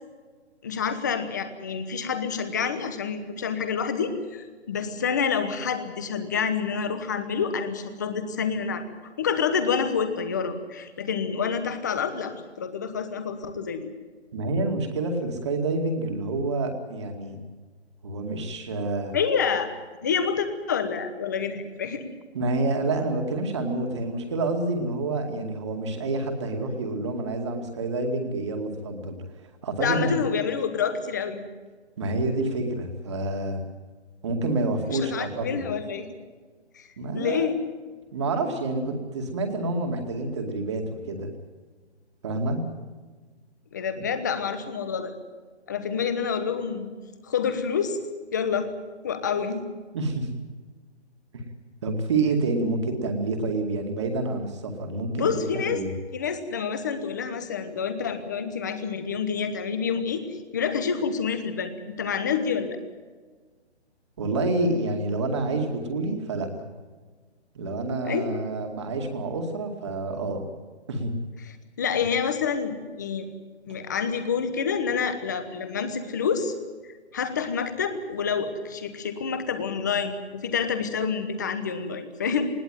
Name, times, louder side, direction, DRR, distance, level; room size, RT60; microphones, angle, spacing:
voice 1, 0.6-8.8 9.2-13.9 19.1-19.7 20.0-22.0 29.8-31.5 34.8-36.2 36.7-36.9 37.1-37.6 43.7-45.1 45.7-46.9 47.2-48.0 48.3-48.7 49.0-49.6 55.2-55.8 56.1-60.2 60.5-62.8 68.0-68.4 71.8-73.3 73.7-76.5 77.1-82.5, left 6 dB, 15° left, 10 dB, 1.1 m, -28 dB
voice 2, 14.3-17.4 18.0-19.2 22.3-29.1 29.6-30.1 32.0-33.6 34.2-35.6 37.0-37.5 38.1-41.3 42.2-42.6 44.0-44.1 49.9-50.3 51.8-55.9 64.2-66.5 67.5-70.5 70.9-71.1, right 2 dB, 25° right, 5 dB, 2.3 m, -28 dB
20.5 x 18.0 x 9.2 m, 1.4 s
hypercardioid pair, 175°, 34 cm